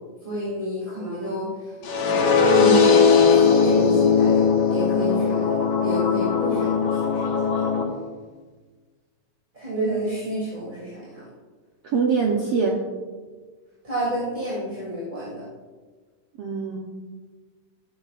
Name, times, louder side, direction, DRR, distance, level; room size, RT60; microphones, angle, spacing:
voice 1, 0.2-5.5 5.8-7.3 9.5-11.2 13.8-15.4, right 1 dB, 15° right, -8 dB, 2.6 m, -29 dB
sound 1, 1.8-7.8, left 5 dB, 55° left, 2.5 m, -19 dB
voice 2, 11.8-12.8 16.4-16.8, right 5 dB, 75° right, 0 dB, 1.4 m, -23 dB
14.0 x 13.0 x 2.5 m, 1.4 s
omnidirectional pair, 4.0 m